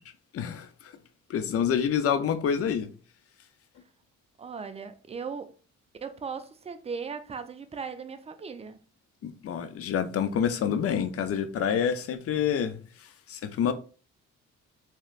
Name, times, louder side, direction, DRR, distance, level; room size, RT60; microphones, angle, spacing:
voice 1, 0.3-0.9 1.3-2.9 9.2-13.7, left 8 dB, 50° left, 0.5 m, -28 dB
voice 2, 4.4-5.5 6.0-8.8, right 5 dB, 20° right, 0.4 m, -38 dB
3.2 x 2.8 x 2.4 m
cardioid pair, 90°, 30 cm